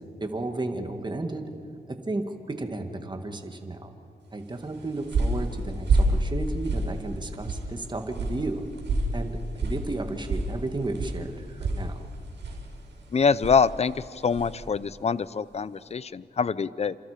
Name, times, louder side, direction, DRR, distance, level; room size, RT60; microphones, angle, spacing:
voice 1, 0.2-1.5 1.9-3.9 4.3-8.6 9.1-12.1, right 2 dB, 25° right, 5 dB, 2.0 m, -33 dB
sound 1, 4.6-14.7, right 2 dB, 80° right, 6.0 m, -30 dB
voice 2, 13.1-17.0, left 5 dB, 35° left, 18 dB, 0.6 m, -25 dB
29.5 x 27.0 x 5.1 m, 2.5 s
wide cardioid pair, 105°, 18 cm